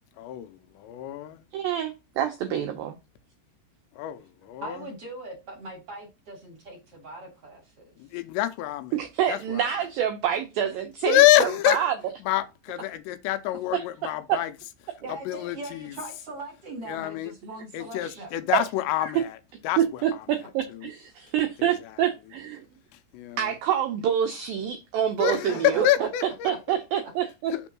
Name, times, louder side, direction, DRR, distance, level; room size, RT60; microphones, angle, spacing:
voice 1, 0.2-0.5 0.8-1.4 4.0-4.8 8.0-8.9 9.3-9.6 11.0-11.8 12.2-14.5 15.1-15.9 16.9-17.3 17.7-19.4 19.6-20.0 20.7-20.9 21.6-21.7 23.1-23.5 25.2-26.5 26.9-27.0 27.5-27.6, left 14 dB, 85° left, 2.8 m, -26 dB
voice 2, 1.5-3.0 8.9-12.0 14.3-14.4 18.0-18.2 18.5-18.6 19.0-19.1 19.8-22.6 23.4-26.1 26.4-27.5, right 9 dB, 85° right, 2.0 m, -27 dB
voice 3, 4.6-7.9 13.7-13.9 15.0-18.4 25.5-26.1 26.5-26.6, right 2 dB, 45° right, 2.3 m, -40 dB
6.2 x 3.6 x 5.9 m
omnidirectional pair, 5.1 m